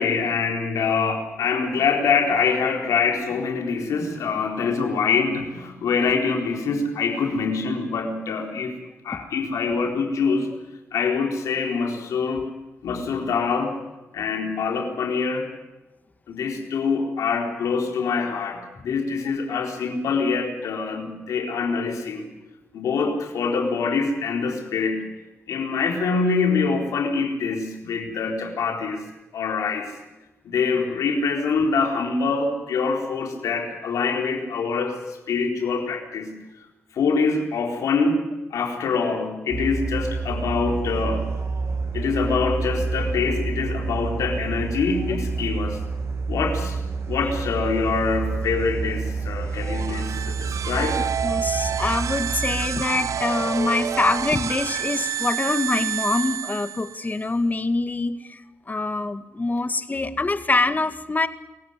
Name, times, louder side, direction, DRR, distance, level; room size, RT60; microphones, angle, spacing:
voice 1, 0.0-8.7 9.0-10.5 10.9-12.5 12.8-13.8 14.1-15.5 16.3-22.2 22.7-25.0 25.5-29.0 29.3-29.9 30.4-36.3 36.9-38.2 38.5-41.3 41.9-45.8 46.3-46.8 47.1-51.0, left 5 dB, 80° left, 2 dB, 4.1 m, -24 dB
sound 1, 39.5-54.8, right 4 dB, 55° right, 5.0 m, -29 dB
sound 2, 49.5-57.2, right 9 dB, 70° right, 0.7 m, -29 dB
voice 2, 51.2-58.4 58.7-61.3, left 3 dB, 30° left, 10 dB, 2.0 m, -24 dB
25.0 x 15.5 x 9.6 m, 1.1 s
supercardioid pair, 50°, 6 cm